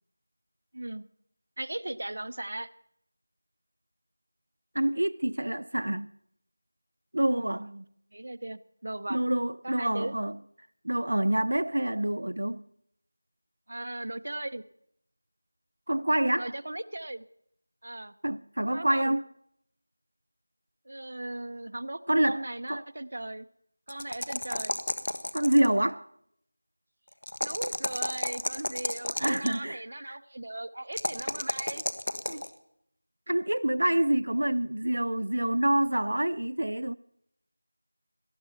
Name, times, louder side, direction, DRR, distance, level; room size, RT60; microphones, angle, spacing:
voice 1, 0.7-1.1 1.6-2.7 5.7-6.1 7.3-7.8 8.1-9.2 9.6-10.2 13.7-14.6 16.4-17.2 17.8-18.1 18.7-19.2 20.8-23.5 23.9-24.8 27.4-31.8 32.3-32.4, right 1 dB, 45° right, 0.8 m, -38 dB
voice 2, 4.7-6.1 7.1-7.7 9.1-10.4 10.8-12.6 15.9-16.5 18.2-19.2 22.1-22.4 22.7-22.8 25.3-26.1 29.2-30.2 33.3-36.9, right 1 dB, 80° right, 0.6 m, -27 dB
sound 1, 23.9-25.8 27.2-29.6 30.9-32.5, left 1 dB, 70° left, 1.5 m, -32 dB
18.5 x 12.5 x 5.8 m
figure-of-eight pair, 180°, 0 cm